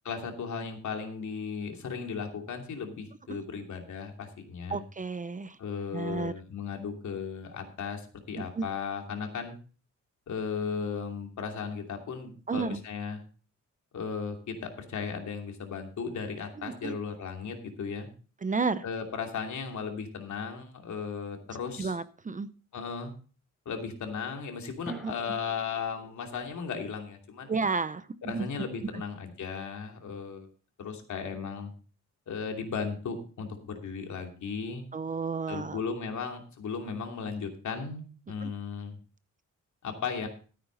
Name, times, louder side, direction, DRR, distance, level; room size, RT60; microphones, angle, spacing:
voice 1, 0.0-4.8 5.6-8.0 8.3-9.6 10.3-13.2 13.9-18.1 18.8-21.9 22.7-23.1 23.6-27.5 28.2-30.5 30.8-31.7 32.3-34.8 35.5-39.0 39.8-40.3, left 5 dB, 70° left, 3 dB, 2.8 m, -36 dB
voice 2, 4.7-5.6 5.9-6.3 8.5-8.6 12.5-12.8 16.6-17.0 18.4-18.8 21.8-22.5 25.0-25.1 27.5-28.5 28.9-29.0 34.9-35.8 38.4-38.5, right 4 dB, 25° right, 14 dB, 0.6 m, -32 dB
sound 1, 24.9-29.2, right 1 dB, ahead, 4.4 m, -50 dB
14.0 x 9.0 x 4.0 m, 0.37 s
wide cardioid pair, 135°, 30 cm